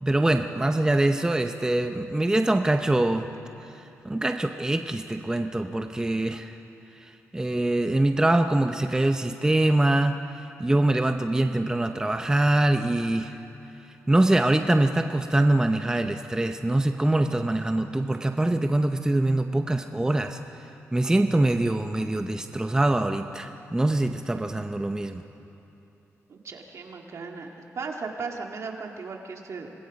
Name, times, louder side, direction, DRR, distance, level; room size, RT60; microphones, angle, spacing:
voice 1, 0.0-3.3 4.0-6.6 7.3-10.2 10.6-13.3 14.1-20.4 20.9-25.2, right 1 dB, 10° right, 6 dB, 0.7 m, -24 dB
voice 2, 26.3-29.7, right 4 dB, 65° right, 2 dB, 2.1 m, -36 dB
26.0 x 19.5 x 5.3 m, 2.9 s
cardioid pair, 100°, 5 cm